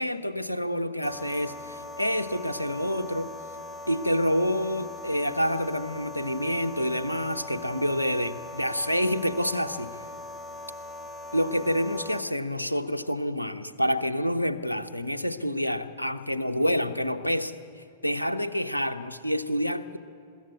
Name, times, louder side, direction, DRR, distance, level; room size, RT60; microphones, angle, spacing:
voice 1, 0.0-3.3 3.9-9.9 11.3-20.0, equal, 90° left, 10 dB, 1.0 m, -28 dB
sound 1, 1.0-12.2, left 2 dB, 15° left, 1.4 m, -41 dB
22.5 x 14.5 x 8.5 m, 2.9 s
figure-of-eight pair, 100°, 0 cm